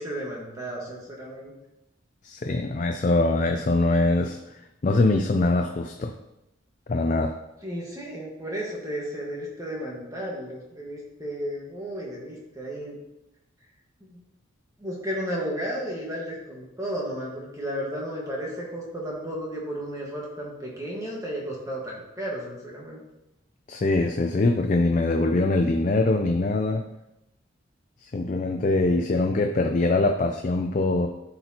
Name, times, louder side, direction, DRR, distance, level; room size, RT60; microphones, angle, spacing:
voice 1, 0.0-1.5 7.6-13.0 14.0-14.2 14.8-23.0, equal, 15° right, -3 dB, 1.4 m, -33 dB
voice 2, 2.2-4.4 4.8-6.1 6.9-7.4 23.7-26.8 28.1-31.1, left 2 dB, 40° left, 5 dB, 0.4 m, -23 dB
12.5 x 4.2 x 2.8 m, 0.91 s
head